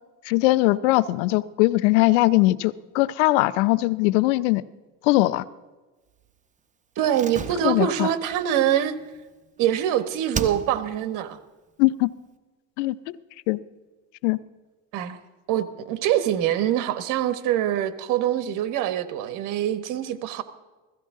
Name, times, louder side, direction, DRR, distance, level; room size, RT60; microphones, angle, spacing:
voice 1, 0.3-4.6 5.0-5.4 7.6-8.1 11.8-12.1 12.8-13.0 13.5-13.6 14.2-14.4, left 19 dB, 90° left, 17 dB, 0.6 m, -20 dB
voice 2, 7.0-9.0 9.6-11.4 14.9-15.2 15.5-20.4, right 11 dB, 65° right, 11 dB, 1.2 m, -24 dB
Slam, 7.1-9.9 10.3-11.1 11.3-11.4, right 5 dB, 20° right, 0.9 m, -35 dB
16.5 x 15.0 x 3.7 m, 1.2 s
supercardioid pair, 115°, 34 cm